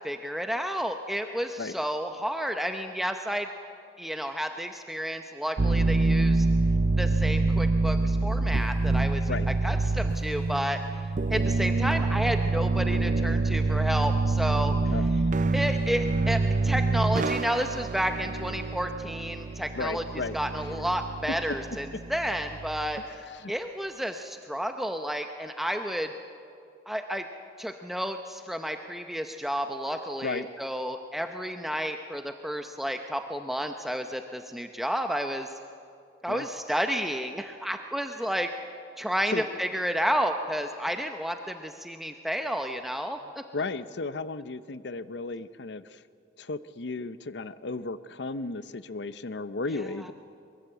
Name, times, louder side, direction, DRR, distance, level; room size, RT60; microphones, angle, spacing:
voice 1, 0.0-3.5 4.0-6.5 7.0-9.3 9.6-10.8 11.3-14.9 15.5-20.0 20.3-23.0 23.5-26.1 26.9-27.2 27.6-35.5 36.2-38.5 39.0-43.4, equal, ahead, 5 dB, 0.7 m, -31 dB
sound 1, 5.6-23.0, right 3 dB, 45° right, 0.5 m, -26 dB
voice 2, 14.9-15.3 19.7-20.9 23.0-23.5 30.2-30.5 36.3-36.4 39.3-39.4 43.5-46.0 46.4-50.1, left 3 dB, 75° left, 14 dB, 0.7 m, -35 dB
23.0 x 22.5 x 7.9 m, 2.5 s
head